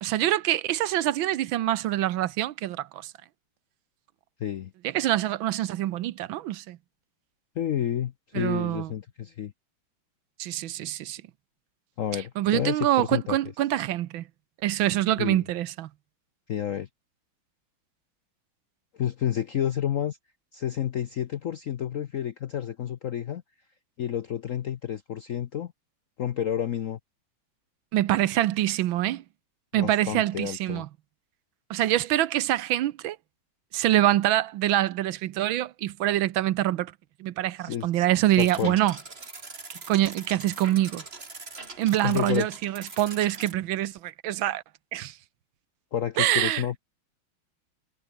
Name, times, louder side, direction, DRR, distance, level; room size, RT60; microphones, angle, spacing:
voice 1, 0.0-3.1 4.8-6.8 8.3-8.9 10.4-11.2 12.1-14.2 14.6-15.9 27.9-29.2 29.7-30.9 31.7-33.2 33.7-36.9 37.2-38.9 39.7-41.0 41.8-44.6 44.9-45.2 46.2-46.6, right 13 dB, 80° right, 1.5 m, -25 dB
voice 2, 4.4-4.7 7.6-9.5 12.0-13.4 15.2-15.4 16.5-16.9 18.9-20.2 20.5-23.4 24.0-25.7 26.2-27.0 29.7-30.8 37.6-38.1 38.4-38.8 42.0-42.5 45.9-46.8, left 10 dB, 70° left, 0.8 m, -30 dB
sound 1, 38.4-43.5, right 3 dB, 30° right, 2.8 m, -42 dB
omnidirectional pair, 2.2 m